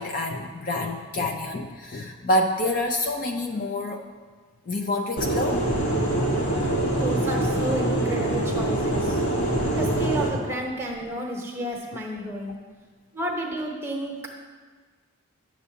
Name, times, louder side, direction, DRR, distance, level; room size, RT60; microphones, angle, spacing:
voice 1, 0.0-4.0 4.7-5.6 6.1-7.1 8.4-8.5 8.9-9.0 9.4-9.9, left 1 dB, 40° left, 3 dB, 0.4 m, -28 dB
sound 1, 5.2-10.3, right 1 dB, 75° left, 1.6 m, -24 dB
voice 2, 7.0-9.2 9.7-12.6 13.1-14.2, right 1 dB, 10° right, -1 dB, 0.9 m, -31 dB
11.0 x 7.2 x 2.8 m, 1.5 s
head